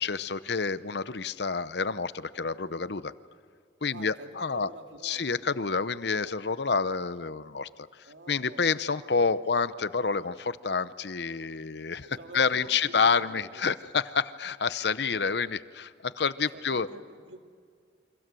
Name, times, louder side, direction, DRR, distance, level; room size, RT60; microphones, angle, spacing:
voice 1, 0.0-3.1 3.8-4.7 5.0-16.9, left 5 dB, 65° left, 14 dB, 0.8 m, -28 dB
voice 2, 3.9-5.6 8.1-8.8 12.1-13.7 16.5-17.4, right 2 dB, 80° right, 4 dB, 2.3 m, -47 dB
29.0 x 24.5 x 7.7 m, 2.2 s
head